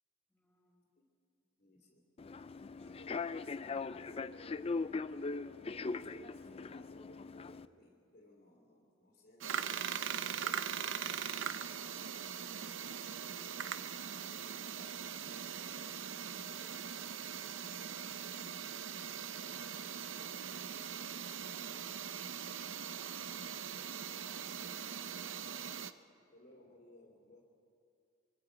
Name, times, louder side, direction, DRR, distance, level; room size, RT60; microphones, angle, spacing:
voice 1, 0.3-0.9 2.8-3.2 14.2-16.1 20.6-21.0 21.4-21.9 24.1-25.3, left 1 dB, 5° left, -2 dB, 5.1 m, -67 dB
voice 2, 1.4-2.1 2.7-3.3 3.7-4.8 5.6-11.9 26.3-27.4, left 1 dB, 50° left, -2 dB, 2.6 m, -60 dB
Human voice / Subway metro underground, 2.2-7.6, left 4 dB, 30° left, 0.4 m, -40 dB
sound 1, 9.4-25.9, right 8 dB, 70° right, 0.7 m, -41 dB
24.5 x 23.5 x 5.1 m, 2.5 s
head